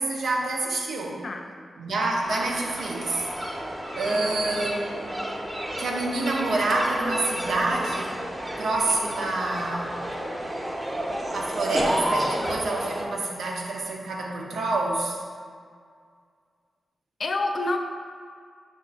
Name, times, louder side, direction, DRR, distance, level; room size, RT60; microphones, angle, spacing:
voice 1, 0.0-1.3 1.8-3.3 4.0-5.1 5.8-8.2 8.6-10.0 11.3-15.2, right 2 dB, 80° right, -1 dB, 0.5 m, -27 dB
sound 1, 2.2-13.1, equal, 15° right, 0.7 m, -31 dB
voice 2, 4.1-4.7 17.2-17.8, left 2 dB, 60° left, 4 dB, 0.3 m, -29 dB
5.5 x 2.4 x 2.4 m, 2.1 s
supercardioid pair, 45°, 0 cm